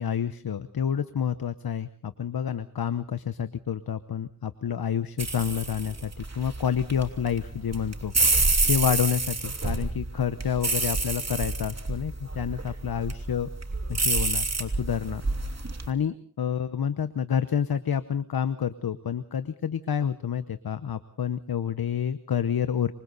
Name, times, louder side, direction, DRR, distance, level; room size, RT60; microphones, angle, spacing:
voice 1, 0.0-8.1 8.6-13.5 13.9-15.2 15.6-22.9, left 8 dB, 90° left, 12 dB, 0.9 m, -29 dB
sound 1, 5.2-15.9, right 3 dB, 45° right, 3.1 m, -28 dB
27.5 x 24.5 x 4.1 m, 0.43 s
cardioid pair, 45°, 35 cm